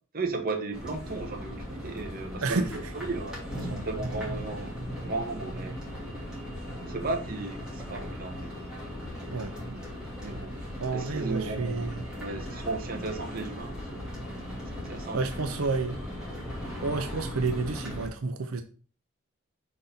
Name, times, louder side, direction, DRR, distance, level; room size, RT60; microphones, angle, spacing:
voice 1, 0.1-4.7 5.0-5.8 6.8-8.6 10.2-10.6 10.9-14.1 14.7-15.4, right 3 dB, 45° right, 3 dB, 1.1 m, -35 dB
sound 1, 0.7-18.1, equal, 5° right, 2.1 m, -38 dB
voice 2, 2.4-2.7 9.3-9.8 10.8-12.0 15.1-16.0 16.8-18.6, right 4 dB, 85° right, 7 dB, 0.7 m, -30 dB
5.2 x 4.0 x 5.6 m, 0.38 s
head